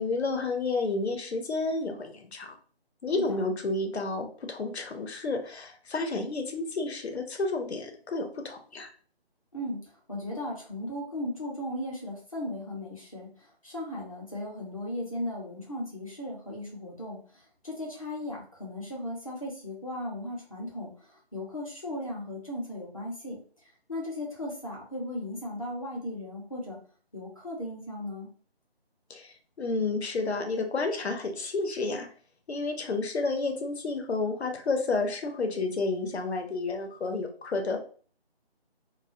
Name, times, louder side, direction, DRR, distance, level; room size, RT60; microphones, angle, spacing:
voice 1, 0.0-2.6 3.0-8.9 29.1-32.1 32.5-37.8, left 3 dB, 90° left, 5 dB, 0.7 m, -31 dB
voice 2, 9.5-23.4 23.9-26.8 27.1-28.3, left 1 dB, 35° left, -3 dB, 0.7 m, -37 dB
2.2 x 2.1 x 2.6 m, 0.42 s
figure-of-eight pair, 175°, 31 cm